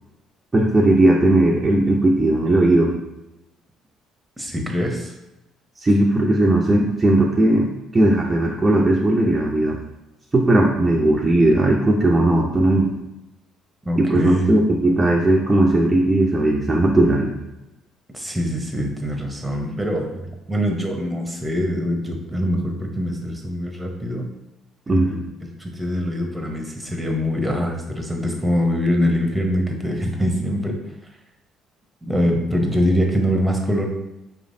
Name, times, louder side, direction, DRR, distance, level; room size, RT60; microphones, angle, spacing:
voice 1, 0.5-2.9 5.8-9.8 10.3-12.9 14.0-17.3 24.9-25.1, right 1 dB, 25° right, -2 dB, 0.6 m, -17 dB
voice 2, 4.4-5.1 13.8-14.5 18.1-24.3 24.9-30.7 32.0-33.9, equal, 10° right, 2 dB, 0.9 m, -23 dB
4.8 x 3.2 x 2.6 m, 0.92 s
supercardioid pair, 65°, 0 cm